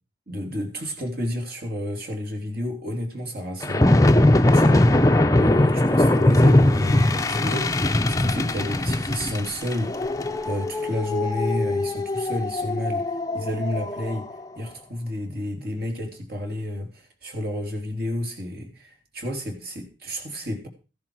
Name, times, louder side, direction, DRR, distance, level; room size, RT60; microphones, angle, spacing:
voice 1, 0.3-3.9 4.4-4.8 5.4-10.0 10.4-14.3 14.6-20.7, left 1 dB, 50° right, 3.3 m, -30 dB
sound 1, 3.6-14.2, left 1 dB, 15° left, 0.7 m, -20 dB
14.5 x 10.5 x 4.8 m
head